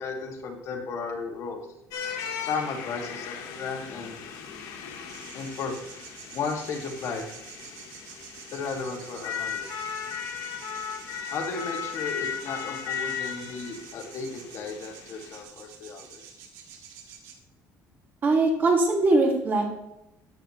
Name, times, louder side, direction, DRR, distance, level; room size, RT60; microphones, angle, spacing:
voice 1, 0.0-1.6 2.5-4.2 5.3-5.8 6.3-7.2 8.5-9.7 11.3-16.2, left 4 dB, 55° left, 2 dB, 2.2 m, -34 dB
sound 1, 1.9-15.4, left 7 dB, 85° left, 2.2 m, -37 dB
sound 2, 5.1-17.3, right 7 dB, 90° right, 2.5 m, -47 dB
voice 2, 18.2-19.6, right 2 dB, 30° right, 1 dB, 2.4 m, -21 dB
13.0 x 9.4 x 3.2 m, 0.87 s
cardioid pair, 155°, 6 cm